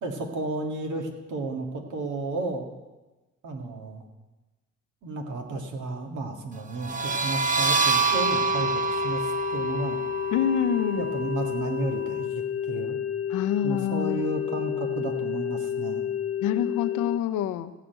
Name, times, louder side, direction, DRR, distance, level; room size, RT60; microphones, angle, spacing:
voice 1, 0.0-2.7 3.4-4.0 5.0-10.0 10.8-13.0 13.6-16.1, right 2 dB, 75° right, 3 dB, 1.9 m, -33 dB
sound 1, 6.7-12.2, right 4 dB, 25° right, 0.9 m, -27 dB
sound 2, 8.1-17.2, left 10 dB, 50° left, 0.5 m, -30 dB
voice 2, 10.3-11.1 13.3-14.3 16.4-17.7, left 9 dB, 90° left, 9 dB, 0.7 m, -26 dB
15.0 x 5.1 x 9.0 m, 1.2 s
cardioid pair, 90°, 30 cm